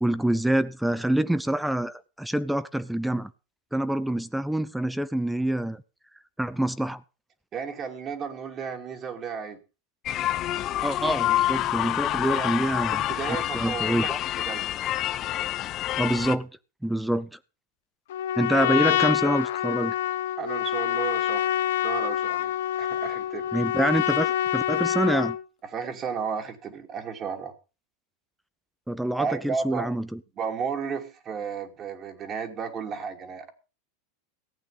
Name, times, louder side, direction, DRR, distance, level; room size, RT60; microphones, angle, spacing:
voice 1, 0.0-3.3 3.7-5.8 6.4-7.0 10.8-13.0 13.5-14.2 16.0-16.5 16.8-17.4 18.4-19.9 23.5-25.4 28.9-30.2, right 1 dB, 5° right, 0.7 m, -26 dB
voice 2, 7.5-9.6 12.3-12.5 13.1-14.1 14.5-14.7 20.4-21.5 21.8-23.5 25.7-27.5 29.2-29.9 30.4-33.5, right 6 dB, 35° right, 2.7 m, -33 dB
sound 1, 10.1-16.4, left 13 dB, 40° left, 0.8 m, -27 dB
Trumpet, 18.1-25.4, left 11 dB, 70° left, 0.8 m, -26 dB
15.0 x 8.8 x 5.4 m
hypercardioid pair, 90°, 0 cm